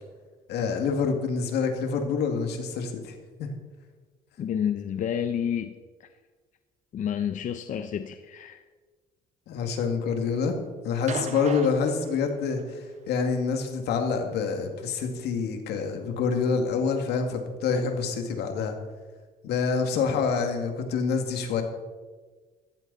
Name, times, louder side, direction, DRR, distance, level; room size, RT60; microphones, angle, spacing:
voice 1, 0.5-3.1 3.4-3.5 9.5-10.5 10.8-18.8 19.4-21.6, left 5 dB, 75° left, 5 dB, 2.2 m, -27 dB
voice 2, 4.4-5.7 6.0-6.1 6.9-8.6, left 8 dB, 50° left, 9 dB, 0.7 m, -29 dB
sound 1, 11.1-12.7 14.0-14.1, right 5 dB, 45° right, 1.3 m, -37 dB
14.5 x 14.0 x 4.1 m, 1.4 s
cardioid pair, 110°, 17 cm